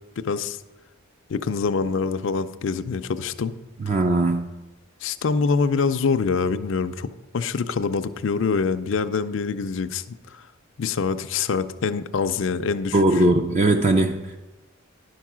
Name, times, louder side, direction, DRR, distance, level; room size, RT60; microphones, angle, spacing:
voice 1, 0.2-0.6 1.3-3.5 3.9-4.0 5.0-7.1 7.3-10.0 10.3-10.4 10.8-13.2, left 5 dB, 65° left, 10 dB, 0.4 m, -25 dB
voice 2, 3.9-4.5 12.9-14.4, right 2 dB, 35° right, 4 dB, 0.4 m, -20 dB
10.5 x 4.7 x 6.0 m, 1.1 s
head